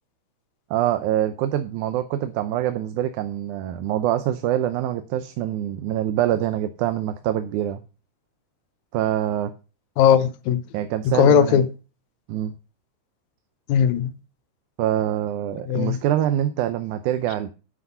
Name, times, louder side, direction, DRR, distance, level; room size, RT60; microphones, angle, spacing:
voice 1, 0.7-7.8 8.9-9.5 10.7-11.6 12.3-12.5 14.8-17.5, right 12 dB, 90° right, 2.2 m, -25 dB
voice 2, 10.0-10.6 11.1-11.7 13.7-14.1 15.7-16.0, left 8 dB, 80° left, 2.0 m, -18 dB
9.8 x 6.1 x 5.5 m
omnidirectional pair, 3.4 m